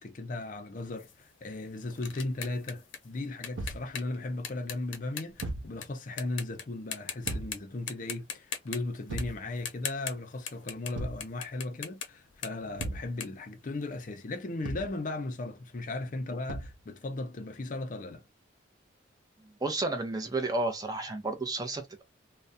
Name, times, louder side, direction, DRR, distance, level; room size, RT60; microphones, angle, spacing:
voice 1, 0.0-18.2, left 2 dB, 45° left, 0.5 m, -37 dB
sound 1, 1.0-5.9 6.2-6.6 6.9-7.6 7.9-10.9 11.2-14.2, left 8 dB, 90° left, 0.6 m, -40 dB
Thump thud, 3.5-3.9 5.4-5.7 7.2-7.6 9.1-9.4 10.9-11.3 12.8-13.1 14.6-15.0 16.5-16.8, right 2 dB, 85° right, 0.5 m, -36 dB
voice 2, 19.6-22.0, right 2 dB, 20° right, 0.5 m, -31 dB
2.3 x 2.1 x 2.6 m
head